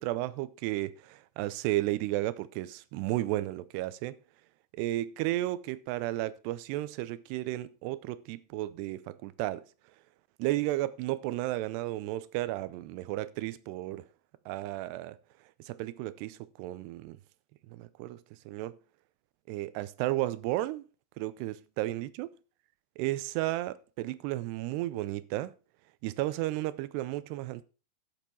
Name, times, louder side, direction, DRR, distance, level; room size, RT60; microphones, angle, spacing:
voice 1, 0.0-4.2 4.8-9.6 10.4-14.1 14.5-15.2 15.6-17.2 17.7-18.2 18.5-18.8 19.5-20.8 21.2-22.3 23.0-25.5 26.0-27.6, right 16 dB, 85° right, 2.7 m, -33 dB
12.0 x 7.1 x 4.5 m
omnidirectional pair, 4.7 m